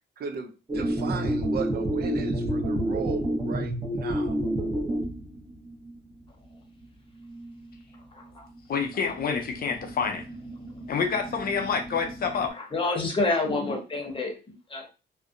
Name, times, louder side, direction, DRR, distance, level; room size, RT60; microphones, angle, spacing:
voice 1, 0.2-4.4, right 6 dB, 50° right, 0.5 m, -36 dB
sound 1, 0.7-6.1 6.5-6.6 6.8-6.9 7.2-8.0 8.2-12.5, right 1 dB, 25° right, 0.9 m, -30 dB
voice 2, 8.1-8.5 12.5-14.9, left 3 dB, 25° left, 0.8 m, -28 dB
voice 3, 8.7-10.2 10.9-12.6, left 6 dB, 50° left, 0.5 m, -28 dB
2.6 x 2.1 x 2.5 m
cardioid pair, 90°, 20 cm